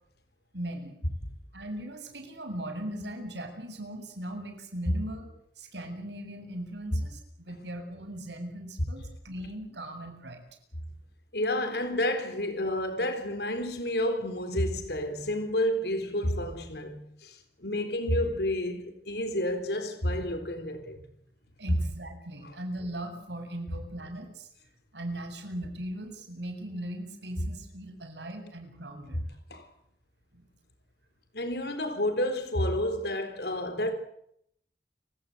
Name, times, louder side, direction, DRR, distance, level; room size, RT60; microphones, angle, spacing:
voice 1, 0.5-1.0 1.5-5.3 5.6-10.4 21.6-24.5 24.9-29.2 30.3-30.5, right 1 dB, 90° right, 7.6 m, -39 dB
voice 2, 11.3-21.0 29.1-29.2 29.5-29.6 31.3-33.9, left 1 dB, 75° left, 3.9 m, -30 dB
29.5 x 17.5 x 7.9 m
head